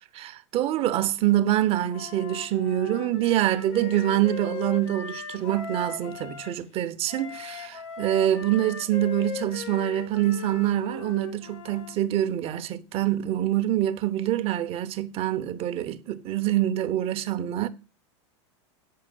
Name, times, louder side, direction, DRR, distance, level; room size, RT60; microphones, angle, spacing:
voice 1, 0.1-17.7, right 12 dB, 40° right, 0.9 m, -25 dB
Wind instrument woodwind instrument, 1.9-6.5 7.1-11.9, left 5 dB, 85° left, 3.1 m, -38 dB
8.5 x 6.6 x 7.5 m
hypercardioid pair, 120°, 15 cm